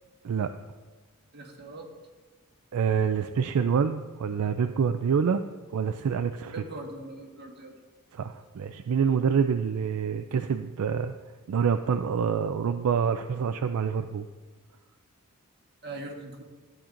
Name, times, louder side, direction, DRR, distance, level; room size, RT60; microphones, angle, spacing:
voice 1, 1.3-1.9 6.5-7.8 15.8-16.4, right 2 dB, 50° right, 0 dB, 1.5 m, -41 dB
voice 2, 2.7-5.4 5.7-6.5 8.1-11.1 11.5-14.3, right 6 dB, 75° right, 8 dB, 0.4 m, -26 dB
13.5 x 8.6 x 2.5 m, 1.3 s
head